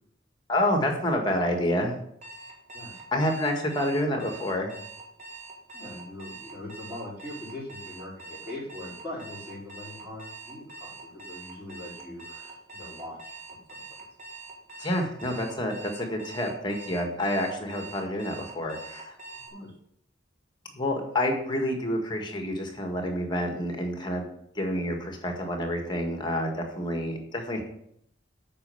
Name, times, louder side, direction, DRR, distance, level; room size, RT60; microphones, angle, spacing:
voice 1, 0.5-2.0 3.1-4.7 14.8-19.1 20.7-24.2 24.5-27.6, left 1 dB, 25° left, 3 dB, 1.7 m, -28 dB
Alarm, 2.2-19.5, right 3 dB, 35° right, 2.1 m, -44 dB
voice 2, 5.7-10.9 11.2-13.8 19.5-19.7, left 1 dB, 10° right, -7 dB, 4.6 m, -41 dB
8.6 x 5.4 x 7.0 m, 0.71 s
head